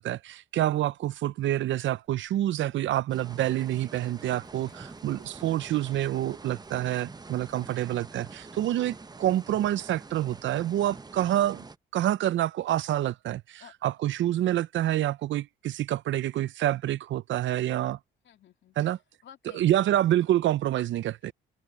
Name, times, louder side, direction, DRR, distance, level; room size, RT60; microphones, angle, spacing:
voice 1, 0.0-11.6 11.9-18.0 18.8-19.0 19.5-21.3, right 13 dB, 70° right, 0.6 m, -27 dB
Livestock farm animals working animals, 2.0-9.4, left 4 dB, 35° left, 7.9 m, -68 dB
sound 1, 3.1-11.8, right 3 dB, 20° right, 0.9 m, -46 dB
voice 2, 4.6-5.0 13.6-13.7 14.0-14.1 18.2-19.0 19.2-19.8 21.2-21.3, left 9 dB, 65° left, 2.7 m, -53 dB
cardioid pair, 90°, 20 cm